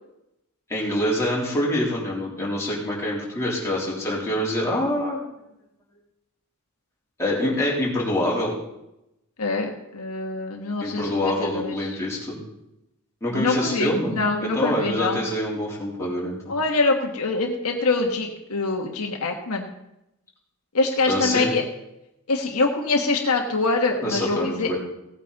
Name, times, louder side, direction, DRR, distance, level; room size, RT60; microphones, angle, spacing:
voice 1, 0.7-5.3 7.2-8.5 10.8-12.4 13.2-14.1 14.4-16.5 21.1-21.5 24.0-24.8, left 1 dB, 15° left, -5 dB, 3.4 m, -25 dB
voice 2, 9.4-11.9 13.3-15.2 16.5-19.7 20.7-21.6 22.3-24.7, left 3 dB, 75° left, 2 dB, 1.4 m, -24 dB
17.0 x 8.8 x 4.1 m, 0.87 s
head